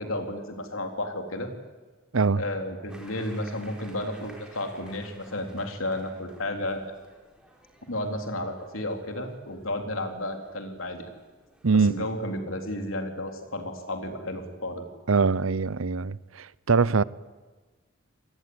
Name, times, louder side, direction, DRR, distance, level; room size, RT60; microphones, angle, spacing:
voice 1, 0.0-1.5 2.4-6.9 7.9-11.1 11.7-14.8, left 1 dB, 70° left, 3.8 m, -32 dB
sound 1, 2.9-12.1, equal, 5° right, 4.9 m, -54 dB
voice 2, 11.6-12.0 15.1-17.0, right 4 dB, 75° right, 0.7 m, -23 dB
28.0 x 19.5 x 9.8 m
head